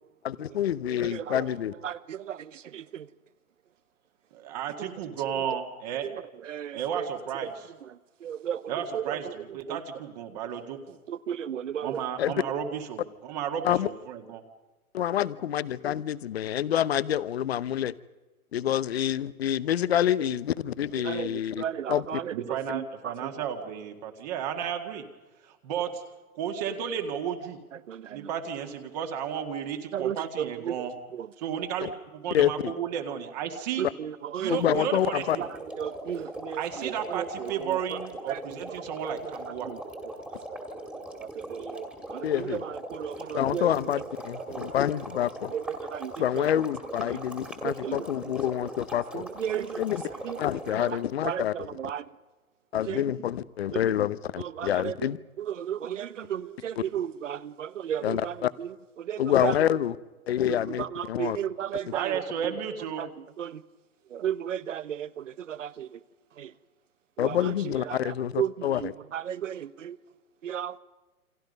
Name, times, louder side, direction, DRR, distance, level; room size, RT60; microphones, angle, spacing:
voice 1, 0.2-1.7 12.2-12.3 13.6-13.9 14.9-17.9 18.5-22.2 31.8-31.9 32.3-32.7 34.5-35.4 42.2-42.6 43.3-45.5 46.2-49.3 49.8-50.0 50.4-51.7 52.7-55.2 56.8-56.9 58.0-58.5 59.2-60.0 60.3-61.4 67.2-68.9, left 11 dB, 45° left, 0.9 m, -27 dB
voice 2, 0.9-1.4 1.8-3.1 6.0-7.1 8.2-9.3 9.7-9.8 11.1-12.0 21.0-23.3 27.9-28.3 29.9-30.8 31.1-31.3 33.8-34.8 35.4-35.5 35.8-37.8 38.3-38.4 39.0-39.2 39.7-39.8 41.2-43.7 44.3-44.7 45.5-46.5 47.6-48.0 49.1-49.8 50.2-50.4 50.8-51.0 51.2-52.0 52.9-53.0 53.7-53.8 54.4-54.9 55.4-58.7 59.0-59.5 60.5-62.5 63.0-63.1 63.4-63.6 64.1-66.0 66.4-66.5 67.2-70.0 70.4-70.8, right 9 dB, 55° right, 1.1 m, -34 dB
voice 3, 4.3-6.1 6.7-7.7 8.7-11.0 11.8-14.4 22.3-25.0 25.4-26.0 26.3-27.6 28.1-30.9 31.4-33.9 34.4-35.5 36.6-39.7 61.9-63.0, right 8 dB, 30° right, 2.0 m, -33 dB
sound 1, 34.6-51.0, right 1 dB, 5° right, 2.3 m, -40 dB
28.5 x 25.5 x 5.4 m
hypercardioid pair, 150°, 44 cm